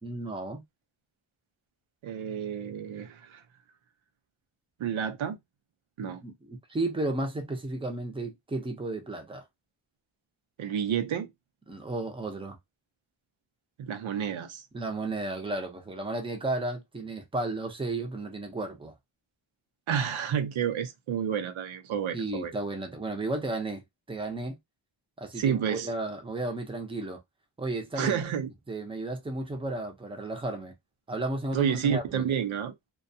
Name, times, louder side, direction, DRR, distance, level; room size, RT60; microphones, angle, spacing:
voice 1, 0.0-0.6 6.0-9.4 11.7-12.6 14.7-18.9 22.1-23.8 24.1-24.6 25.2-27.2 27.6-28.2 28.7-30.7 31.1-32.3, right 2 dB, 10° right, 0.5 m, -33 dB
voice 2, 2.0-3.4 4.8-5.4 6.0-6.2 10.6-11.3 13.8-14.6 19.9-22.5 25.4-25.9 28.0-28.5 31.5-32.7, right 8 dB, 90° right, 0.6 m, -30 dB
2.3 x 2.2 x 2.6 m
wide cardioid pair, 140°, 46 cm